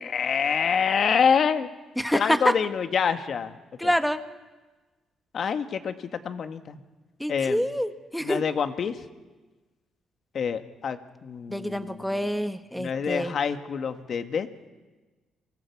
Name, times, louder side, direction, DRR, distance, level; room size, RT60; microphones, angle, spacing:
voice 1, 0.1-1.7 2.1-3.6 3.8-3.9 5.3-5.9 6.2-6.8 7.3-7.6 8.2-9.0 10.3-12.3 12.8-14.5, left 6 dB, 55° left, 8 dB, 1.7 m, -26 dB
voice 2, 2.0-2.4 3.8-4.2 7.2-8.4 11.5-13.3, equal, ahead, 8 dB, 1.5 m, -27 dB
29.5 x 25.0 x 4.8 m, 1.2 s
cardioid pair, 90°, 0 cm